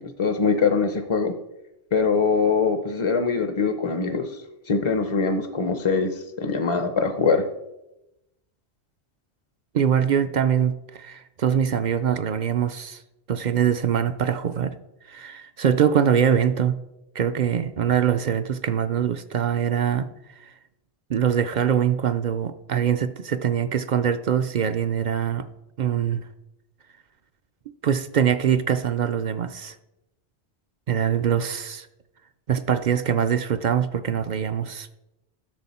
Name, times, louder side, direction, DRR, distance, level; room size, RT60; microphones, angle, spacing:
voice 1, 0.0-1.3 1.9-4.4 4.7-7.5, left 5 dB, 35° left, 7 dB, 0.6 m, -23 dB
voice 2, 9.7-13.0 13.3-14.7 15.1-16.8 17.1-20.1 20.4-20.5 21.1-25.5 25.8-26.3 27.8-29.7 30.9-31.9 32.5-34.9, right 8 dB, 55° right, 11 dB, 0.5 m, -23 dB
12.0 x 6.5 x 4.2 m, 0.92 s
omnidirectional pair, 1.1 m